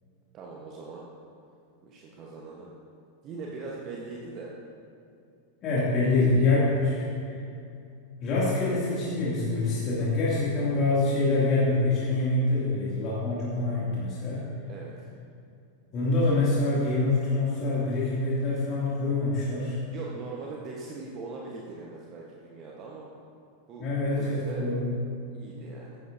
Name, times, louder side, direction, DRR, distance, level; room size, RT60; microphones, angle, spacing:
voice 1, 0.3-1.0 1.8-2.7 3.2-4.5 12.4-12.6 14.7-15.1 19.7-23.1 23.7-24.6 25.3-26.0, right 3 dB, 35° right, -3 dB, 1.2 m, -41 dB
voice 2, 5.6-7.4 8.2-14.4 15.9-19.8 23.8-24.9, left 2 dB, 35° left, -8 dB, 2.5 m, -25 dB
15.0 x 10.5 x 2.7 m, 2.6 s
figure-of-eight pair, 90°, 0 cm